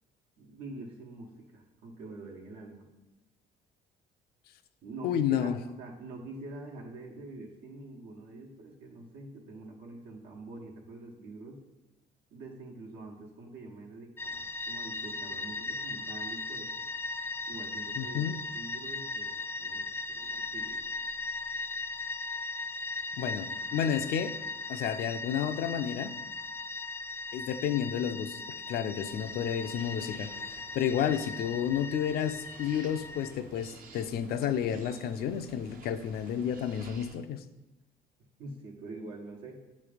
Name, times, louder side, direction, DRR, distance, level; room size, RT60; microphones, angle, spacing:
voice 1, 0.4-2.9 4.8-11.6 12.3-16.7 17.5-18.2 18.5-20.8 38.4-39.6, right 2 dB, 80° right, -1 dB, 1.2 m, -45 dB
voice 2, 5.0-5.6 18.0-18.4 23.2-24.3 24.7-26.1 27.3-28.4 28.7-37.4, left 9 dB, 65° left, 10 dB, 0.5 m, -31 dB
sound 1, 14.2-33.3, left 3 dB, 15° left, 0.4 m, -38 dB
sound 2, 29.1-37.1, right 4 dB, 55° right, 0.7 m, -52 dB
7.7 x 3.2 x 5.0 m, 1.0 s
cardioid pair, 110°, 17 cm